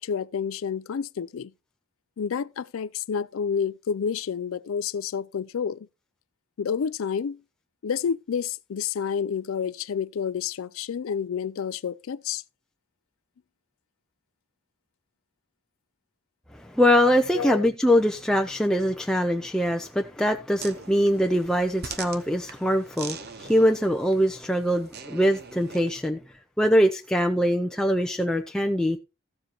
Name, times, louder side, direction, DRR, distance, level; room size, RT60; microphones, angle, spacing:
voice 1, 0.0-1.5 2.2-5.9 6.6-7.4 7.8-12.4 17.3-17.7, left 7 dB, 70° left, 0.4 m, -29 dB
voice 2, 16.6-26.2 26.6-29.0, equal, 5° left, 0.5 m, -23 dB
sound 1, 20.6-26.0, right 6 dB, 45° right, 0.9 m, -42 dB
14.0 x 7.5 x 2.9 m
head